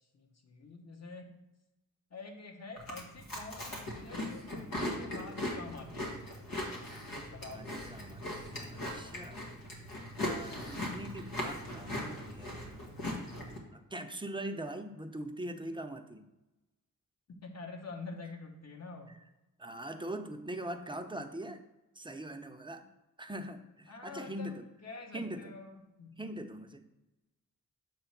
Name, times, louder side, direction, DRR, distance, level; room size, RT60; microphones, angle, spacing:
voice 1, 0.1-1.3 2.1-6.2 7.3-7.6 10.4-10.9 17.3-19.1 23.9-24.5 24.8-26.2, left 3 dB, 50° left, 3 dB, 1.1 m, -47 dB
Chewing mastication, 2.8-13.6, left 1 dB, 80° left, 1.5 m, -39 dB
voice 2, 7.1-9.4 10.2-12.8 13.7-16.2 19.6-21.6 22.0-22.8 23.2-24.7 25.1-25.5 26.2-26.8, right 1 dB, 15° right, 6 dB, 0.6 m, -42 dB
7.0 x 3.1 x 5.9 m, 0.98 s
cardioid pair, 65°, 34 cm